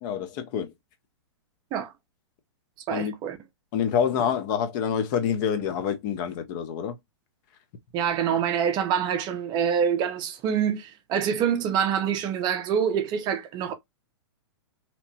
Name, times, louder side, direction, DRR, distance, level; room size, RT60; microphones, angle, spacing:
voice 1, 0.0-0.7 2.9-3.1 3.7-7.0, left 8 dB, 40° left, 0.6 m, -27 dB
voice 2, 2.9-3.4 7.9-13.7, right 8 dB, 30° right, 0.5 m, -26 dB
2.8 x 2.0 x 2.7 m
hypercardioid pair, 130°, 15 cm